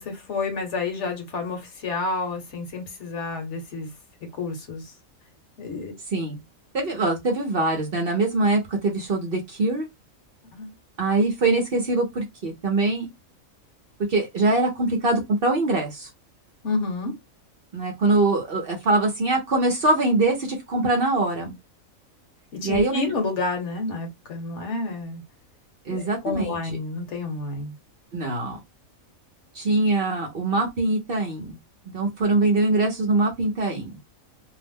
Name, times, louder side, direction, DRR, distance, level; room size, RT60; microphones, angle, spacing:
voice 1, 0.0-3.9 4.4-4.9 5.6-6.0 10.5-10.7 16.6-17.1 22.5-25.2 25.9-27.8, left 3 dB, 60° left, 1.1 m, -29 dB
voice 2, 6.7-9.9 11.0-13.1 14.1-16.1 17.7-21.5 22.6-23.1 25.8-26.6 28.1-28.6 29.5-31.6 31.9-34.0, right 2 dB, 50° right, 0.8 m, -23 dB
2.7 x 2.0 x 3.4 m
omnidirectional pair, 1.4 m